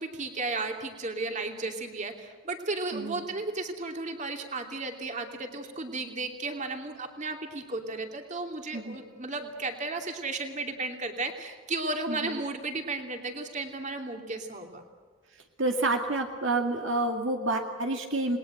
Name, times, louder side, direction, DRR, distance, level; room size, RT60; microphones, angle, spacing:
voice 1, 0.0-14.8, right 3 dB, 35° right, 4 dB, 2.8 m, -34 dB
voice 2, 2.9-3.2 8.7-9.0 12.1-12.4 15.6-18.4, right 2 dB, 60° right, 3 dB, 2.2 m, -29 dB
29.0 x 21.0 x 7.9 m, 1.5 s
head